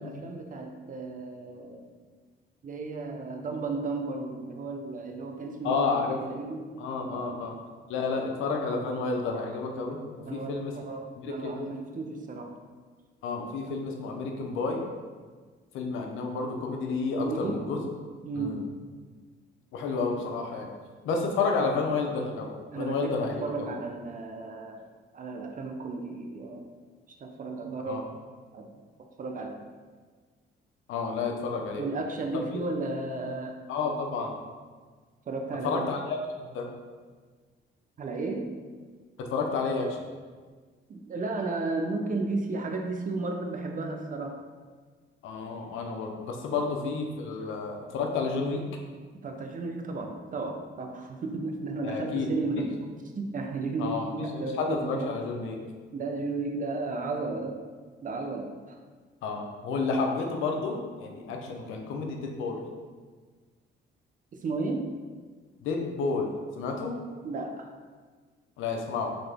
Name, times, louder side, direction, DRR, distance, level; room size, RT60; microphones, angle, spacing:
voice 1, 0.0-1.9 2.6-6.9 7.1-7.3 8.1-8.3 10.2-12.5 17.2-17.6 18.2-18.6 22.7-24.9 25.1-26.7 27.2-28.1 28.5-28.8 29.2-29.6 31.8-33.6 35.3-35.8 38.0-38.5 40.9-44.4 49.2-52.9 53.2-55.1 55.9-57.6 58.0-58.8 64.3-64.9 67.2-67.7, right 3 dB, 40° right, 4 dB, 0.6 m, -34 dB
voice 2, 5.6-6.2 6.8-7.6 7.9-10.0 10.3-10.7 11.2-11.6 13.2-14.8 15.7-17.8 18.4-18.6 19.7-20.7 21.0-23.7 27.9-28.0 30.9-31.8 33.7-34.3 35.6-36.7 39.2-40.0 45.2-48.6 51.8-52.3 53.8-55.6 59.2-62.6 65.6-66.3 66.6-67.0 68.6-69.1, left 4 dB, 85° left, 2 dB, 0.7 m, -30 dB
4.0 x 3.3 x 3.4 m, 1.5 s
cardioid pair, 90°, 20 cm